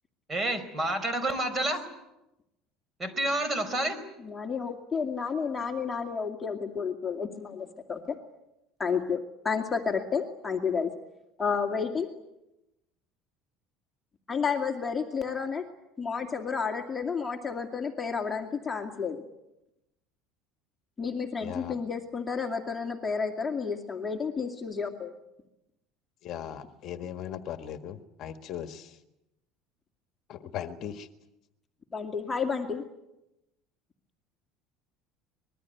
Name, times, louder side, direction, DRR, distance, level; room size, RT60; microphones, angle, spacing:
voice 1, 0.3-1.8 3.0-4.0, right 1 dB, 25° right, 11 dB, 5.0 m, -29 dB
voice 2, 4.2-8.2 8.8-9.2 9.4-10.9 11.4-12.1 14.3-15.6 16.0-19.2 21.0-25.1 31.9-32.8, left 5 dB, 15° left, 2 dB, 2.4 m, -31 dB
voice 3, 21.4-21.8 26.2-28.9 30.3-31.1, left 9 dB, 50° left, 8 dB, 1.6 m, -38 dB
25.0 x 21.5 x 9.2 m, 0.92 s
cardioid pair, 135°, 0 cm